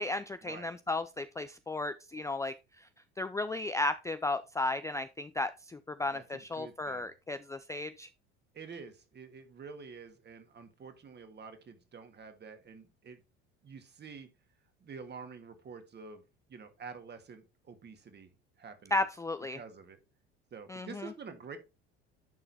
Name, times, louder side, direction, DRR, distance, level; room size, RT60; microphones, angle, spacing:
voice 1, 0.0-2.9 3.2-8.1 18.9-19.6 20.7-21.1, left 2 dB, 10° left, 11 dB, 0.4 m, -34 dB
voice 2, 6.0-7.1 8.5-13.2 13.6-14.3 14.8-16.2 16.5-18.3 18.6-19.0 19.5-20.0 20.5-21.6, right 5 dB, 35° right, 8 dB, 1.8 m, -48 dB
11.0 x 3.9 x 4.0 m, 0.27 s
hypercardioid pair, 80°, 29 cm